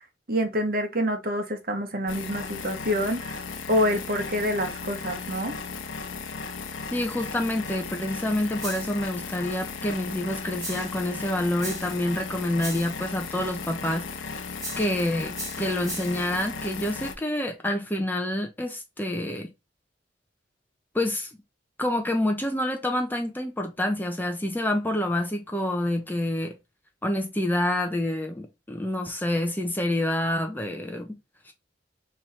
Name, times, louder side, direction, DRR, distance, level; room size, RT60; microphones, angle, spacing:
voice 1, 0.3-3.4 3.7-5.6, equal, 50° right, 1.1 m, -27 dB
sound 1, 2.1-17.1, left 4 dB, 85° left, 0.7 m, -36 dB
voice 2, 6.9-14.3 14.8-19.5 20.9-21.3 21.8-26.6 27.0-31.1 31.5-31.6, left 1 dB, 10° left, 0.6 m, -27 dB
sound 2, 8.6-9.0 10.6-11.0 11.6-12.0 12.6-13.0 14.6-15.0 15.3-16.3, right 1 dB, 15° right, 2.3 m, -37 dB
3.7 x 3.1 x 4.2 m
head